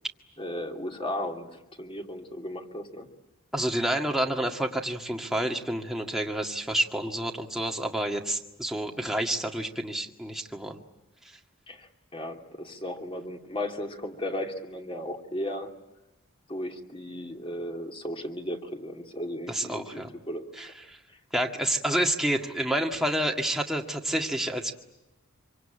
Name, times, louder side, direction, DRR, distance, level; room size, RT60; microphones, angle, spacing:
voice 1, 0.4-3.1 11.7-15.7 16.5-20.5 21.1-21.2, left 1 dB, 25° left, 3 dB, 2.7 m, -35 dB
voice 2, 3.5-10.8 11.2-11.4 19.5-20.1 20.6-21.0 21.3-24.7, right 1 dB, ahead, 1 dB, 1.9 m, -29 dB
26.0 x 25.0 x 8.9 m, 0.98 s
head